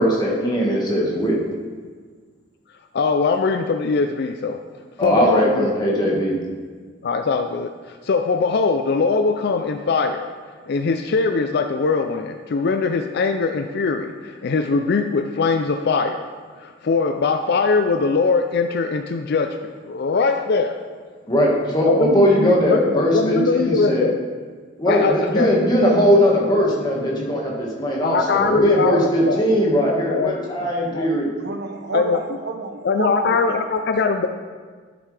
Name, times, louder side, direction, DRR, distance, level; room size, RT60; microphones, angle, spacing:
voice 1, 0.0-1.4 5.0-6.4 21.3-24.1 24.8-31.3, equal, 20° left, -3 dB, 1.7 m, -19 dB
voice 2, 2.9-4.6 5.0-5.7 7.0-7.7 8.1-10.3 10.7-14.1 14.4-16.3 16.8-19.6 19.9-20.7 21.9-22.8 23.1-24.1 24.9-25.5 28.0-29.4 29.8-30.4 30.9-31.1 31.9-32.2 32.8-34.3, left 4 dB, 60° left, 7 dB, 0.4 m, -21 dB
voice 3, 31.4-33.6, right 3 dB, 60° right, 5 dB, 0.9 m, -30 dB
12.5 x 7.7 x 3.3 m, 1.6 s
head